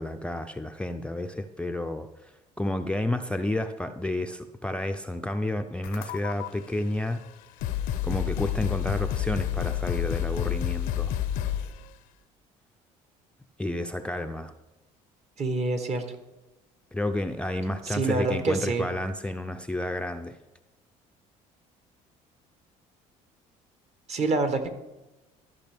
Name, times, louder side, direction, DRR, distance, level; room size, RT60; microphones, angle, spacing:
voice 1, 0.0-2.3 2.6-7.2 8.0-11.1 13.6-14.5 16.9-20.4, left 1 dB, 5° left, 6 dB, 0.4 m, -31 dB
sound 1, 5.8-6.5 7.2-7.3 7.6-11.8, left 10 dB, 80° left, 0.7 m, -29 dB
voice 2, 15.4-16.0 17.8-18.9 24.1-24.7, right 3 dB, 45° right, 8 dB, 1.2 m, -26 dB
13.5 x 5.4 x 3.5 m, 1.0 s
supercardioid pair, 85°, 15 cm